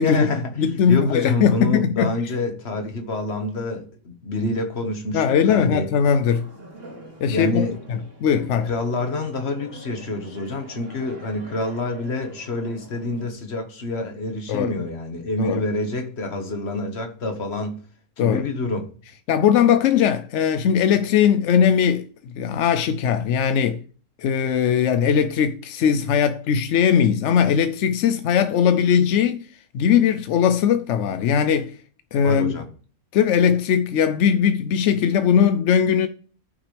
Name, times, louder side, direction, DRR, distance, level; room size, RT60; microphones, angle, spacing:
voice 1, 0.0-0.5 0.9-5.9 7.3-7.8 8.7-17.8 18.2-18.9 32.2-32.6, left 2 dB, 45° left, 1.6 m, -27 dB
voice 2, 0.6-2.1 5.1-6.5 7.2-7.6 7.9-8.7 14.5-14.8 15.4-15.6 18.2-18.4 19.3-23.8 24.2-29.5 29.7-31.8 32.1-32.6 33.1-36.1, left 8 dB, 65° left, 0.7 m, -19 dB
sound 1, 6.2-13.3, right 1 dB, 55° right, 2.9 m, -45 dB
14.0 x 5.9 x 3.3 m
omnidirectional pair, 1.5 m